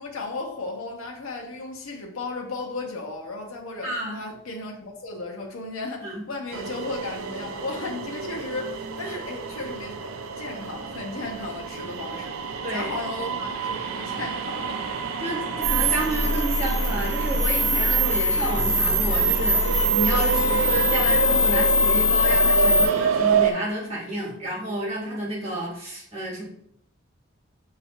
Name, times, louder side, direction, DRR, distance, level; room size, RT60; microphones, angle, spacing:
voice 1, 0.0-14.8, left 3 dB, 85° left, 1 dB, 0.7 m, -35 dB
voice 2, 3.8-4.2 6.0-6.2 9.0-9.2 12.6-12.9 15.2-15.4 15.7-26.4, right 1 dB, 30° right, -7 dB, 1.6 m, -30 dB
sound 1, 6.5-23.5, right 6 dB, 90° right, 0.4 m, -29 dB
sound 2, 13.6-18.5, right 3 dB, 65° right, 0.8 m, -42 dB
sound 3, 15.6-22.9, left 1 dB, 5° right, 0.3 m, -22 dB
5.5 x 2.8 x 2.9 m, 0.69 s
head